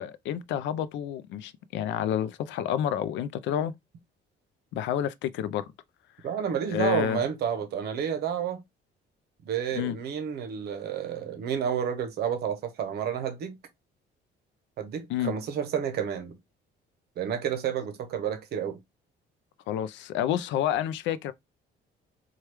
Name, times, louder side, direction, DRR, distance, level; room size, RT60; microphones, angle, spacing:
voice 1, 0.0-3.7 4.7-5.7 6.7-7.2 9.7-10.0 15.1-15.3 19.7-21.3, left 10 dB, 70° left, 0.4 m, -29 dB
voice 2, 6.2-8.6 9.4-13.6 14.8-16.3 17.2-18.8, right 8 dB, 55° right, 0.7 m, -30 dB
3.0 x 2.3 x 3.2 m
cardioid pair, 170°, 19 cm